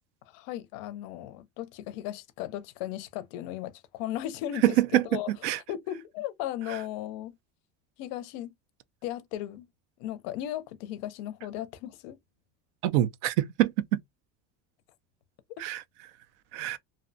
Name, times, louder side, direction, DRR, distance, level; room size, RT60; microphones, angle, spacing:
voice 1, 0.3-5.3 5.7-7.4 8.0-8.5 9.0-9.7 10.0-12.2, left 12 dB, 50° left, 0.4 m, -36 dB
voice 2, 4.6-5.6 12.8-14.0 15.6-15.8 16.5-16.8, right 14 dB, 75° right, 0.5 m, -25 dB
2.6 x 2.0 x 2.6 m
cardioid pair, 170°, 35 cm